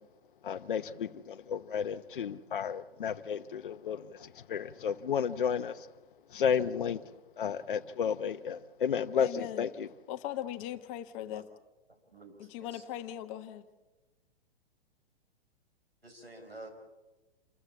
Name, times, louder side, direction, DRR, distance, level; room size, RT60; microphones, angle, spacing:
voice 1, 0.4-5.9 6.3-7.0 7.4-9.9, left 7 dB, 60° left, 1.0 m, -32 dB
voice 2, 9.2-9.6 10.1-11.5 12.4-13.6, left 12 dB, 35° left, 1.3 m, -39 dB
voice 3, 12.1-12.8 16.0-16.7, right 2 dB, 85° right, 5.0 m, -49 dB
28.5 x 14.5 x 8.5 m
figure-of-eight pair, 110°, 29 cm